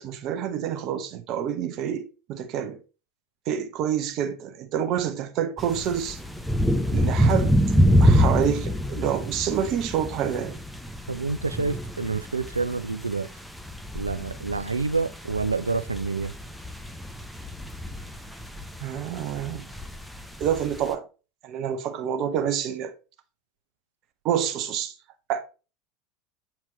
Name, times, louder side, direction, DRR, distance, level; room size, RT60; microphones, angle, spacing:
voice 1, 0.0-2.8 3.5-6.2 6.9-7.6 8.0-10.6 18.8-19.7 20.4-21.0 21.4-22.9 24.2-24.9 25.3-25.4, right 9 dB, 45° right, 0.9 m, -27 dB
sound 1, 5.6-20.9, equal, ahead, 0.8 m, -26 dB
voice 2, 11.1-13.3 13.9-16.4, right 4 dB, 80° right, 0.4 m, -28 dB
7.4 x 4.4 x 3.0 m
figure-of-eight pair, 75°, 0 cm